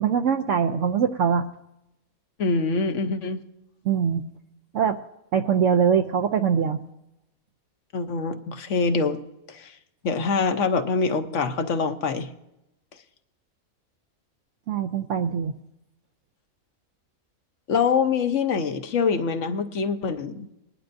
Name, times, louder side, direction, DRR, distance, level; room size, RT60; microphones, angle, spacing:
voice 1, 0.0-1.5 3.8-4.2 4.7-5.0 5.3-6.8 14.7-15.5, right 7 dB, 70° right, 6 dB, 0.9 m, -22 dB
voice 2, 2.4-3.4 7.9-9.2 9.5-9.7 10.0-12.3 17.7-20.5, left 5 dB, 60° left, 8 dB, 1.1 m, -24 dB
21.0 x 11.0 x 2.6 m, 0.87 s
omnidirectional pair, 1.5 m